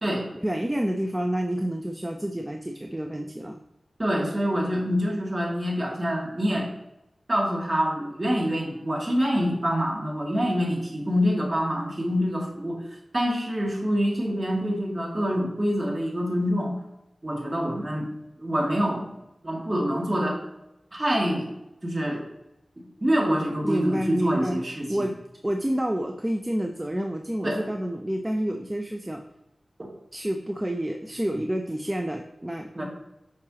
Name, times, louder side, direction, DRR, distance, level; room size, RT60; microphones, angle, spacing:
voice 1, 0.4-3.6 23.6-24.6 24.9-29.2 30.1-32.8, right 1 dB, 20° right, 5 dB, 0.5 m, -29 dB
voice 2, 4.0-6.7 7.3-12.8 13.1-16.7 17.2-18.1 18.4-19.0 19.4-20.4 20.9-21.5 21.8-22.2 22.8-25.1 27.4-27.7 32.8-32.9, equal, 35° right, -2 dB, 2.1 m, -26 dB
6.2 x 5.9 x 2.9 m, 0.89 s
cardioid pair, 45°, 0 cm